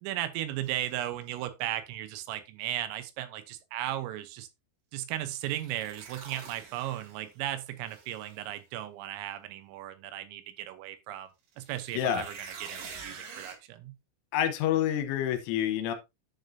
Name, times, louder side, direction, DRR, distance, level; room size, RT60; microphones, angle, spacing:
voice 1, 0.0-4.5 4.9-11.3 11.6-13.9, right 13 dB, 80° right, 3.5 m, -36 dB
sound 1, 0.6-0.9 5.3-7.4 7.9-8.5 11.5-13.5, right 5 dB, 60° right, 2.6 m, -46 dB
voice 2, 14.3-15.9, left 10 dB, 80° left, 3.3 m, -27 dB
10.5 x 6.5 x 2.7 m
omnidirectional pair, 5.9 m